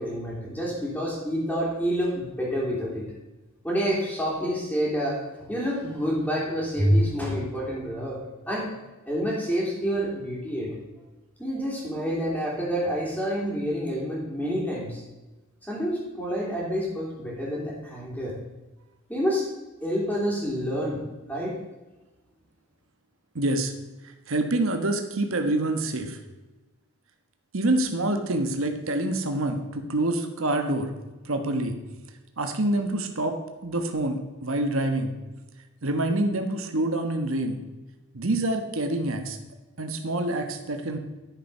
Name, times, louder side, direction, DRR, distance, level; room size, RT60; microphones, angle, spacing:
voice 1, 0.0-3.0 3.6-8.2 8.5-8.7 9.1-10.7 11.4-15.0 15.6-18.3 19.1-19.4 19.8-21.0 21.3-21.6, equal, 5° left, -8 dB, 3.0 m, -28 dB
voice 2, 23.3-23.7 24.3-26.2 27.5-30.9 31.2-31.8 32.4-33.4 33.6-35.1 35.8-37.6 38.1-39.4 39.8-41.0, right 1 dB, 65° right, 6 dB, 1.3 m, -26 dB
12.0 x 6.9 x 5.6 m, 1.1 s
head